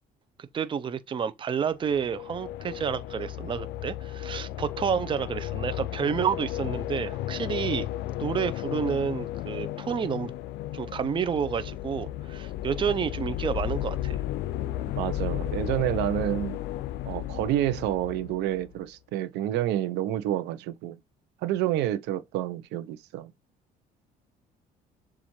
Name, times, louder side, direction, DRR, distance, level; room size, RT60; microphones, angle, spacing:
voice 1, 0.4-7.9 8.2-10.3 10.7-14.2, right 7 dB, 30° right, 0.5 m, -30 dB
sound 1, 1.8-18.8, left 13 dB, 80° left, 0.4 m, -34 dB
voice 2, 15.0-16.6 17.0-21.0 21.4-23.3, right 13 dB, 85° right, 0.6 m, -29 dB
6.9 x 2.4 x 3.0 m
cardioid pair, 110°, 17 cm